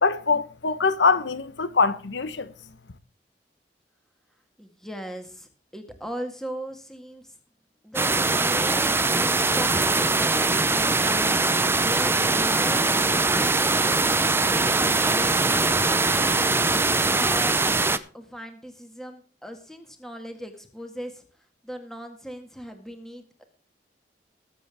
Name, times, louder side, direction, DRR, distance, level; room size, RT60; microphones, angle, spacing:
voice 1, 0.0-2.5, left 4 dB, 85° left, 1.2 m, -23 dB
voice 2, 4.6-7.4 7.8-15.3 15.8-17.7 18.1-23.4, equal, 5° left, 1.8 m, -39 dB
sound 1, 7.9-18.0, right 3 dB, 15° right, 0.7 m, -22 dB
20.5 x 7.8 x 3.6 m
head